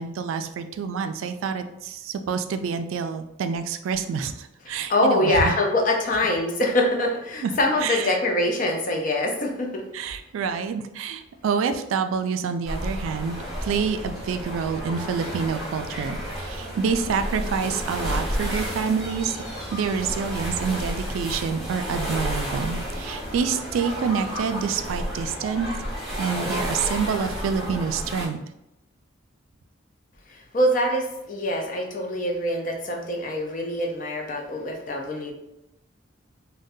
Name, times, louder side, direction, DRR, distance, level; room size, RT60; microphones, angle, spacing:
voice 1, 0.0-5.5 7.4-7.5 7.8-8.2 9.9-19.4 19.7-25.7 26.2-28.4, right 6 dB, 90° right, 9 dB, 0.3 m, -27 dB
voice 2, 4.7-9.8 30.3-35.3, left 1 dB, 40° left, 2 dB, 0.5 m, -24 dB
sound 1, 12.6-28.3, equal, ahead, 0.8 m, -31 dB
3.6 x 2.1 x 2.6 m, 0.88 s
head